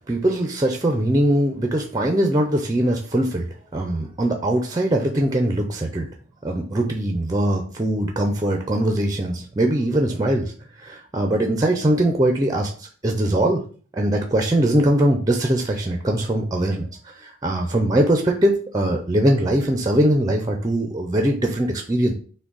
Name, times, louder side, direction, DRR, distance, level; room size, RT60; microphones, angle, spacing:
voice 1, 0.1-6.1 6.4-10.5 10.8-13.6 13.9-16.9 17.2-22.1, right 1 dB, 20° right, 3 dB, 0.4 m, -21 dB
5.9 x 2.1 x 3.9 m, 0.42 s
head